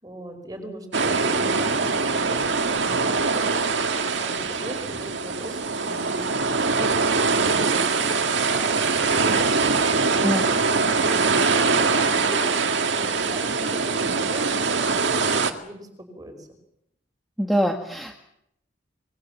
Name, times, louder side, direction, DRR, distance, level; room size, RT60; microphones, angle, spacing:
voice 1, 0.0-3.5 4.1-9.7 10.1-16.5, right 1 dB, 20° right, 6 dB, 5.2 m, -39 dB
sound 1, 0.9-15.5, right 4 dB, 70° right, 1.9 m, -23 dB
voice 2, 17.4-18.2, equal, ahead, 2 dB, 1.8 m, -23 dB
25.0 x 21.0 x 7.3 m, 0.79 s
head